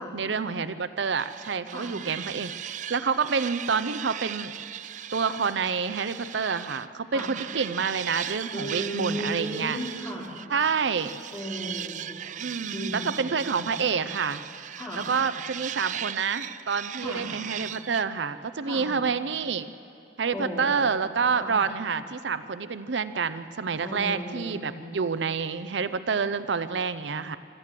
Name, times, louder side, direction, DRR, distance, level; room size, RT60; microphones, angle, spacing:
voice 1, 0.0-4.5 5.1-9.8 10.5-11.2 12.4-14.4 14.9-19.7 20.2-27.4, right 5 dB, 85° right, 13 dB, 0.6 m, -28 dB
sound 1, 1.2-6.9 7.2-18.0, right 10 dB, 45° right, 0.4 m, -38 dB
voice 2, 8.5-10.3 11.3-12.1 12.7-13.3 13.5-14.0 14.8-15.0 17.0-17.3 18.6-18.9 20.3-20.7 21.4-21.6 23.8-24.9, equal, 20° left, -3 dB, 3.7 m, -35 dB
26.0 x 13.0 x 7.6 m, 2.5 s
head